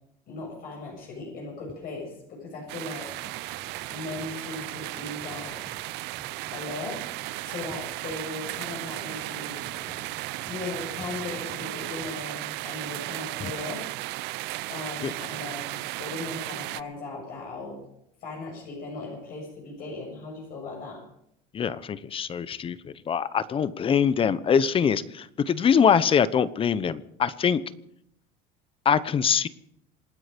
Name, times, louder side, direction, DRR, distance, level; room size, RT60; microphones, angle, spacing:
voice 1, 0.3-3.4 3.9-5.6 6.5-7.0 7.3-9.6 10.5-13.9 14.7-17.8 18.2-21.0, left 3 dB, 50° left, -1 dB, 7.2 m, -38 dB
sound 1, 2.7-16.8, right 20 dB, 65° right, 0.6 m, -35 dB
sound 2, 3.0-12.1, equal, 5° left, 3.0 m, -50 dB
voice 2, 21.5-27.6 28.8-29.5, left 7 dB, 30° left, 16 dB, 1.0 m, -23 dB
27.0 x 9.8 x 5.2 m, 0.75 s
cardioid pair, 125°, 19 cm